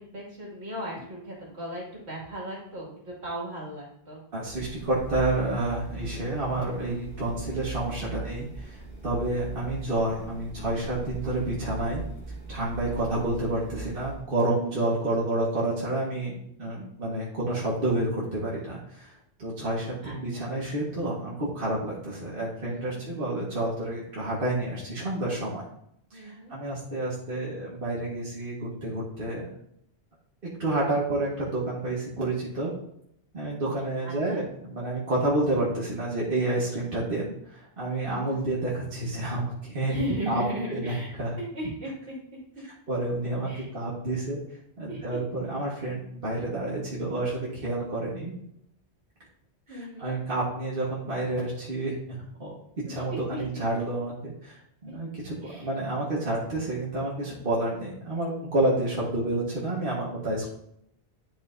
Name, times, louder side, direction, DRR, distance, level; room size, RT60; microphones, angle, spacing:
voice 1, 0.0-4.2 12.7-13.1 20.0-20.4 22.7-23.1 26.1-26.6 31.2-31.5 34.0-34.4 38.0-38.4 39.9-42.2 42.6-42.7 43.4-43.7 44.9-45.2 49.7-50.1 52.9-53.4 54.9-55.0 55.4-55.7, right 1 dB, 80° right, -4 dB, 2.7 m, -37 dB
voice 2, 4.3-12.0 12.5-16.3 16.6-19.1 19.4-25.6 26.1-29.5 30.6-32.7 33.3-40.0 40.3-40.4 40.7-40.9 41.2-41.4 42.9-44.4 44.8-48.3 49.7-52.5 52.9-60.5, right 2 dB, 55° right, -6 dB, 1.9 m, -29 dB
sound 1, 4.4-14.2, right 3 dB, 10° left, 2.3 m, -40 dB
10.5 x 5.6 x 2.7 m, 0.72 s
omnidirectional pair, 1.1 m